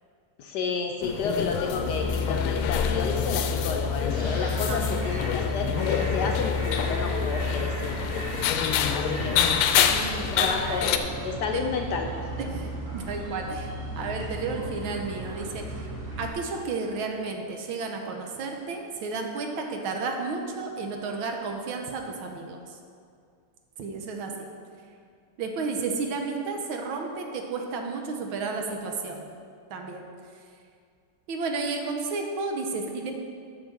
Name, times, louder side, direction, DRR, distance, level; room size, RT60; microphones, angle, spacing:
voice 1, 0.4-8.2 8.9-9.5 10.3-12.1, left 4 dB, 70° left, 3 dB, 1.0 m, -31 dB
sound 1, 1.0-11.0, left 8 dB, 85° left, 1.5 m, -27 dB
sound 2, 1.8-16.3, left 2 dB, 30° right, 1.5 m, -32 dB
voice 2, 4.7-5.1 9.9-11.0 11.5-11.6 12.4-13.7 14.0-15.9 16.2-22.8 23.8-24.5 25.4-29.3 29.7-30.0 31.3-33.1, right 4 dB, 75° right, 3 dB, 1.7 m, -32 dB
8.0 x 6.4 x 6.1 m, 2.3 s
omnidirectional pair, 2.3 m